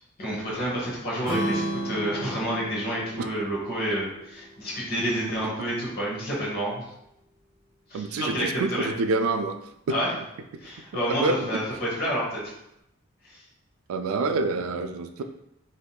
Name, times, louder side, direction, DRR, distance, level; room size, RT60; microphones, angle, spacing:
voice 1, 0.2-6.8 7.9-8.9 9.9-10.1 10.6-12.4 13.2-13.4, equal, 45° left, -5 dB, 1.1 m, -29 dB
Strum, 1.2-5.4, right 1 dB, 20° right, 0.9 m, -33 dB
voice 2, 7.9-9.6 11.2-11.6 13.9-15.2, right 3 dB, 80° right, 8 dB, 0.3 m, -27 dB
3.6 x 2.7 x 2.3 m, 0.83 s
head